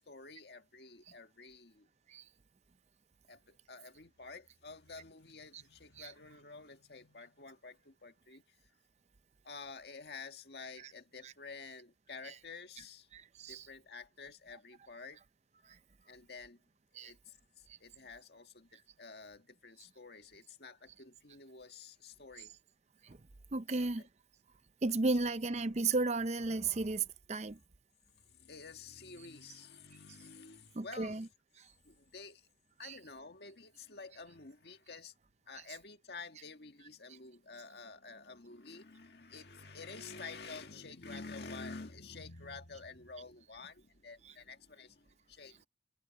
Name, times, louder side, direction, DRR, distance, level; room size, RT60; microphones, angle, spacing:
voice 1, 0.0-1.9 3.3-8.6 9.4-13.1 13.5-15.2 16.1-16.6 16.9-22.5 23.7-24.1 28.1-31.3 31.8-32.5 32.8-35.1 35.5-45.7, left 4 dB, 65° left, 1.8 m, -50 dB
voice 2, 13.1-13.6 17.0-17.1 23.5-24.0 24.8-27.6 30.8-31.2 32.8-32.9, right 3 dB, 40° right, 0.6 m, -33 dB
head